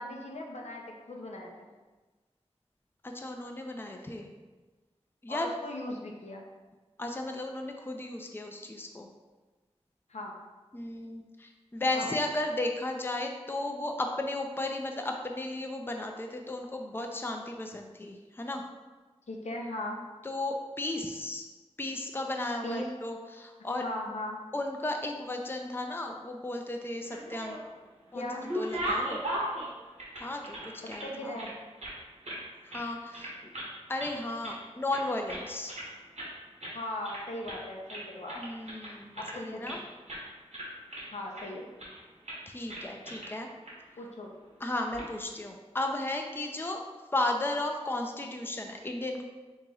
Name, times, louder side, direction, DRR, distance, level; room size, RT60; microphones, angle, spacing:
voice 1, 0.0-1.7 5.3-6.4 10.1-10.4 11.9-12.1 19.3-20.0 22.6-22.9 23.8-24.4 28.1-28.5 31.0-31.5 36.7-38.4 39.2-39.8 41.1-41.7 44.0-44.3, left 1 dB, 80° left, 0 dB, 0.6 m, -38 dB
voice 2, 3.0-4.3 5.2-5.5 7.0-9.1 10.7-18.6 20.2-21.5 21.8-23.8 24.5-27.6 28.1-29.2 30.2-31.4 32.6-33.3 33.9-35.7 38.4-39.8 42.5-43.5 44.6-46.8 47.1-49.2, left 2 dB, 20° left, 3 dB, 0.4 m, -34 dB
sound 1, 27.0-27.8 28.2-31.1 31.4-32.4 32.7-32.9 33.1-33.7 34.0-34.6 34.9-35.9 36.2-36.3 36.6-36.8 37.0-37.6 37.9-39.8 40.1-40.2 40.5-41.4 41.8-42.0 42.2-42.4 42.7-43.3 43.6-43.7 44.7-45.0, right 1 dB, 85° right, 1.1 m, -37 dB
3.8 x 3.0 x 3.8 m, 1.3 s
wide cardioid pair, 55°, 11 cm